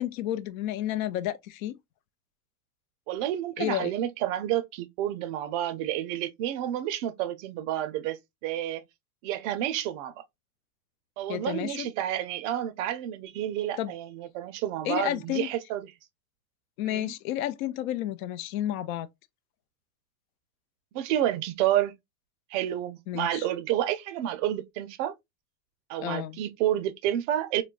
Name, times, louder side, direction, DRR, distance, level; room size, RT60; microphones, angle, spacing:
voice 1, 0.0-1.7 3.6-3.9 11.3-11.9 13.8-13.9 14.9-15.5 16.8-19.1 23.1-23.4 26.0-26.4, left 13 dB, 65° left, 0.5 m, -31 dB
voice 2, 3.1-8.8 9.2-10.2 11.2-15.9 16.8-17.1 20.9-22.0 22.5-25.1 25.9-27.6, right 12 dB, 50° right, 0.5 m, -30 dB
3.8 x 2.1 x 2.3 m
supercardioid pair, 120°, 46 cm